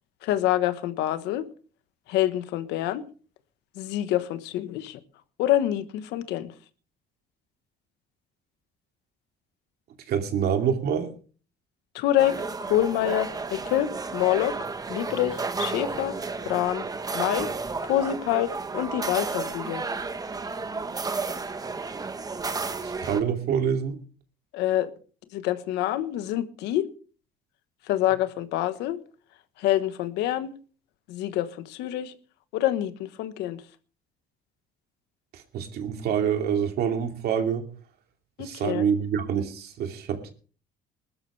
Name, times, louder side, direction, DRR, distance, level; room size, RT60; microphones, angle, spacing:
voice 1, 0.2-1.4 2.1-3.0 3.7-5.0 5.4-6.5 11.9-14.6 14.9-16.2 16.4-16.8 17.1-17.5 17.8-19.8 24.5-24.9 25.3-26.9 27.8-29.0 29.6-30.5 31.1-32.1 32.5-33.6 38.4-38.8, left 13 dB, 90° left, 1.3 m, -26 dB
voice 2, 10.1-11.1 22.8-24.0 35.3-37.7 38.4-40.3, right 7 dB, 70° right, 2.7 m, -26 dB
sound 1, 12.2-23.2, right 4 dB, 20° right, 1.2 m, -32 dB
20.5 x 12.5 x 3.4 m
cardioid pair, 110°, 17 cm